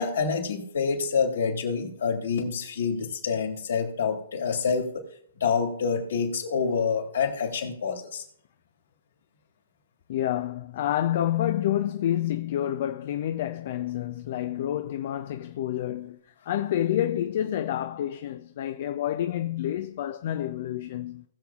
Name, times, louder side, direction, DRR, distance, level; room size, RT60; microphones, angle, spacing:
voice 1, 0.0-5.1 5.4-8.2, left 5 dB, 70° left, 2.9 m, -27 dB
voice 2, 10.1-21.2, left 12 dB, 50° left, 0.5 m, -28 dB
19.5 x 7.0 x 2.4 m
hypercardioid pair, 130°, 0 cm